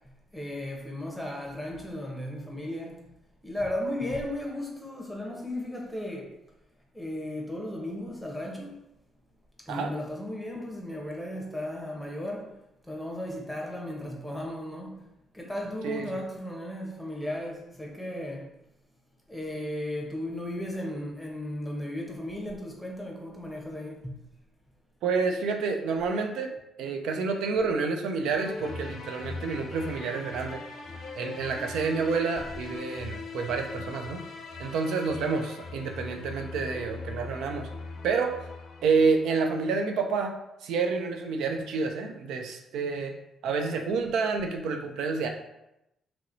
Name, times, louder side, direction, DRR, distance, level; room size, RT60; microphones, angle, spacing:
voice 1, 0.3-3.0 3.4-6.3 6.9-8.8 9.7-12.5 12.8-14.9 15.3-18.5 19.3-24.1, left 1 dB, ahead, -1 dB, 0.8 m, -35 dB
voice 2, 15.8-16.2 25.0-26.5 26.8-30.6 31.1-34.2 34.6-37.7 38.0-38.3 38.8-40.3 40.6-43.1 43.4-45.3, right 4 dB, 85° right, 4 dB, 0.3 m, -28 dB
sound 1, 28.3-39.6, left 3 dB, 60° left, 0.5 m, -40 dB
3.0 x 2.9 x 2.6 m, 0.87 s
cardioid pair, 90°, 0 cm